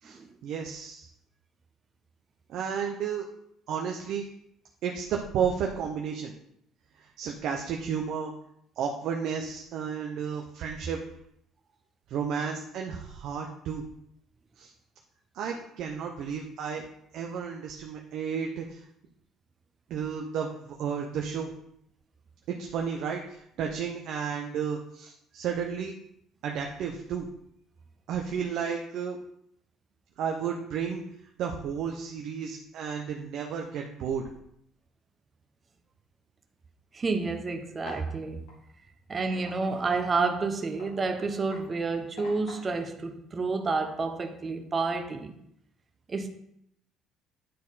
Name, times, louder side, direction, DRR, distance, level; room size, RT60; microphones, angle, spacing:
voice 1, 0.0-1.1 2.5-3.3 3.7-4.3 4.8-6.3 7.0-8.3 8.8-11.0 12.1-13.8 14.6-14.7 15.3-16.8 17.1-18.8 19.9-21.5 22.5-25.9 26.4-27.3 28.1-29.2 30.2-31.0 31.4-34.3, right 7 dB, 70° right, 0.8 m, -32 dB
voice 2, 36.9-38.5 39.1-45.4 46.1-46.3, right 4 dB, 35° right, 0.9 m, -30 dB
sound 1, 37.8-38.2 38.5-38.6 39.2-42.8, left 3 dB, 85° left, 1.9 m, -46 dB
9.4 x 4.3 x 4.1 m
supercardioid pair, 80°, 0 cm